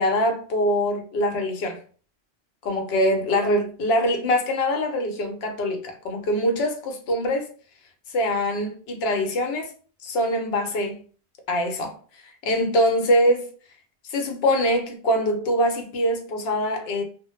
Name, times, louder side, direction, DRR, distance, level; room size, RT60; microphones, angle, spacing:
voice 1, 0.0-1.8 2.6-7.5 8.1-9.7 10.0-11.0 11.5-11.9 12.4-13.5 14.1-17.0, equal, 70° left, 0.8 m, -23 dB
2.0 x 2.0 x 3.0 m
omnidirectional pair, 1.1 m